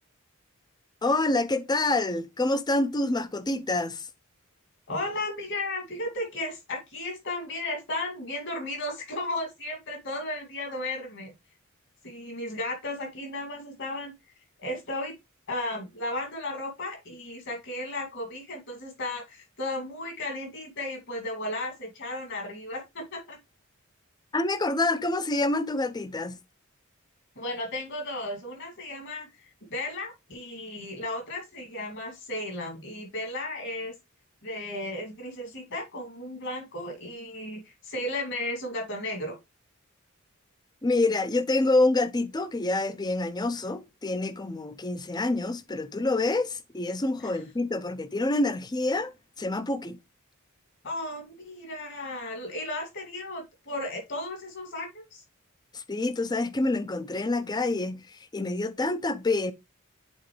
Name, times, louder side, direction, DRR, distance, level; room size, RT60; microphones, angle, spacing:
voice 1, 1.0-4.1 24.3-26.4 40.8-50.0 55.7-59.5, left 2 dB, 20° left, 0.5 m, -27 dB
voice 2, 4.9-11.3 12.0-14.1 14.6-15.1 15.5-23.4 27.4-29.3 29.7-33.9 34.4-39.4 47.2-47.4 50.8-55.2, left 1 dB, 55° left, 2.5 m, -34 dB
8.1 x 4.2 x 3.2 m
head